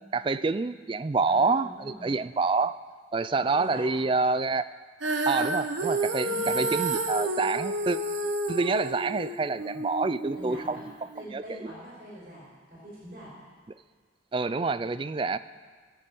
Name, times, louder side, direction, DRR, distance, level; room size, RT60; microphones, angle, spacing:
voice 1, 0.0-2.8 3.1-4.7 5.3-8.0 8.5-10.8 11.3-11.4 14.3-15.4, right 3 dB, 25° right, 13 dB, 0.3 m, -27 dB
voice 2, 1.2-2.2 3.5-4.0 6.2-6.8 10.3-10.9 11.1-13.3, right 1 dB, 45° right, -7 dB, 4.6 m, -44 dB
Female singing, 5.0-11.2, right 2 dB, 90° right, 1.1 m, -30 dB
19.5 x 6.8 x 7.7 m, 1.5 s
head